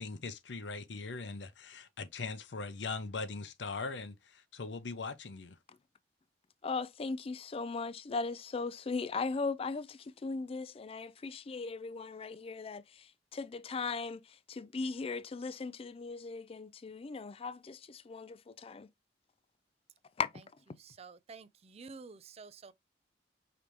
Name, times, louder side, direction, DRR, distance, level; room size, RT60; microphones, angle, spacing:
voice 1, 0.0-5.6, left 4 dB, 90° left, 0.7 m, -40 dB
voice 2, 6.6-13.0 13.3-14.2 14.5-18.9 20.2-20.3, left 4 dB, 35° left, 0.4 m, -38 dB
voice 3, 20.7-22.7, right 4 dB, 35° right, 0.4 m, -50 dB
5.1 x 3.4 x 3.0 m
head